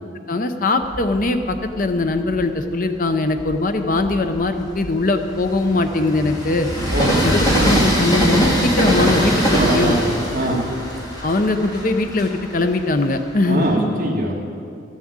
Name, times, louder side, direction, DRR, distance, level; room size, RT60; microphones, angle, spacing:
voice 1, 0.3-6.7 7.2-9.9 10.4-10.5 11.2-13.7, left 2 dB, 45° left, 7 dB, 0.6 m, -21 dB
Train, 0.8-2.5 3.1-13.7, equal, 20° left, 2.2 m, -22 dB
voice 2, 9.6-9.9 10.3-10.6 13.5-14.4, right 1 dB, 40° right, -2 dB, 2.1 m, -22 dB
13.5 x 7.3 x 8.8 m, 2.4 s
head